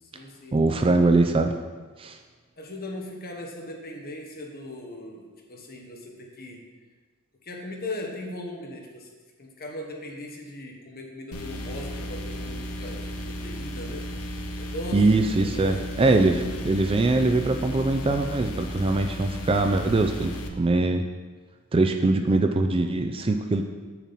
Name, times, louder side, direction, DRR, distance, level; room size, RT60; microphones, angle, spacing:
voice 1, 0.0-0.9 2.6-6.6 7.4-9.1 9.4-14.1 14.6-15.9, left 1 dB, 45° left, 0 dB, 1.3 m, -39 dB
voice 2, 0.5-1.5 2.0-2.2 14.9-21.0 21.7-23.6, right 2 dB, 25° right, 6 dB, 0.4 m, -22 dB
sound 1, 11.3-20.5, equal, 75° left, 0.9 m, -34 dB
7.6 x 7.0 x 4.2 m, 1.4 s
head